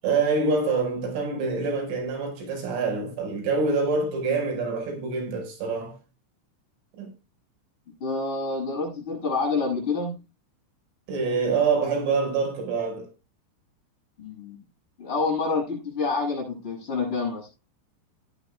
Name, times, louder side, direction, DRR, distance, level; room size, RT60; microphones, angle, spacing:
voice 1, 0.0-6.0 7.0-7.1 11.1-13.1, right 4 dB, 85° right, 7.4 m, -26 dB
voice 2, 8.0-10.2 14.2-14.6 15.0-17.5, left 4 dB, 25° left, 8.7 m, -27 dB
17.5 x 11.0 x 2.3 m
omnidirectional pair, 5.5 m